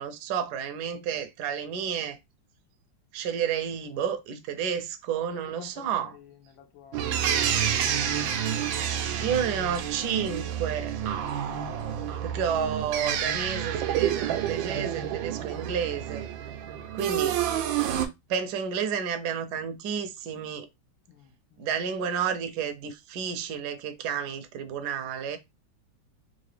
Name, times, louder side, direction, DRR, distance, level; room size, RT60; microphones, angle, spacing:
voice 1, 0.0-2.2 3.1-6.1 9.2-11.2 12.2-16.3 16.9-17.4 18.3-20.7 21.6-25.4, right 7 dB, 70° right, 1.0 m, -31 dB
voice 2, 5.5-7.2 7.7-8.6 11.3-12.0 21.1-21.7 25.3-25.4, left 8 dB, 85° left, 1.6 m, -53 dB
sound 1, 6.9-18.1, right 9 dB, 90° right, 1.3 m, -29 dB
3.8 x 2.6 x 3.2 m
omnidirectional pair, 2.0 m